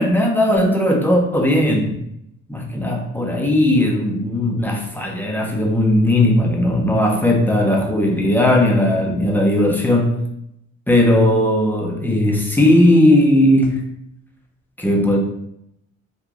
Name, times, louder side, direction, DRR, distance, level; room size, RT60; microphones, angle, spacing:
voice 1, 0.0-2.0 2.5-10.2 10.9-13.8 14.8-15.2, left 1 dB, 5° left, 0 dB, 0.7 m, -17 dB
3.7 x 2.4 x 3.0 m, 0.77 s
cardioid pair, 90°, 30 cm